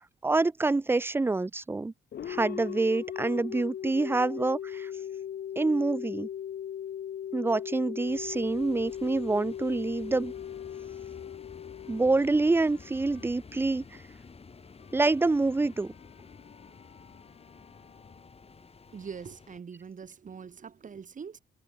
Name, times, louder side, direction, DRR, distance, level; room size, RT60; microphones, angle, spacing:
voice 1, 0.2-1.9 2.3-4.9 5.6-6.3 7.3-10.3 11.9-13.9 14.9-15.9, right 3 dB, 10° right, 0.4 m, -26 dB
sound 1, 2.1-12.8, left 9 dB, 55° left, 1.4 m, -38 dB
sound 2, 8.1-19.6, left 4 dB, 30° left, 2.8 m, -52 dB
Wind instrument woodwind instrument, 10.3-18.4, left 15 dB, 85° left, 4.0 m, -60 dB
voice 2, 18.9-21.4, right 6 dB, 40° right, 2.5 m, -43 dB
cardioid pair, 90°, 20 cm